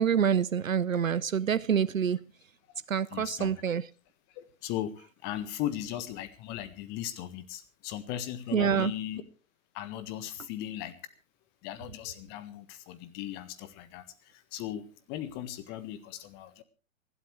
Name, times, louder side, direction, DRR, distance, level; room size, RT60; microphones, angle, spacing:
voice 1, 0.0-2.2 2.9-3.9 8.5-8.9, right 7 dB, 70° right, 0.7 m, -26 dB
voice 2, 3.1-3.6 4.3-9.2 9.7-11.0 11.6-16.6, left 12 dB, 25° left, 1.5 m, -38 dB
27.0 x 12.5 x 3.3 m
figure-of-eight pair, 115°, 41 cm